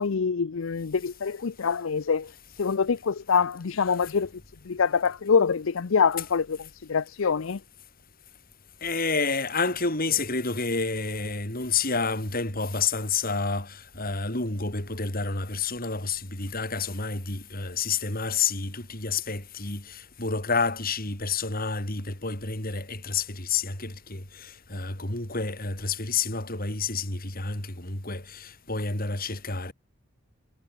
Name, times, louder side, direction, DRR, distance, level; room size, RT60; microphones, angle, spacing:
voice 1, 0.0-2.3 2.6-4.3 4.7-7.6, left 5 dB, 65° left, 0.5 m, -25 dB
voice 2, 8.8-29.7, left 4 dB, 45° left, 5.1 m, -29 dB
head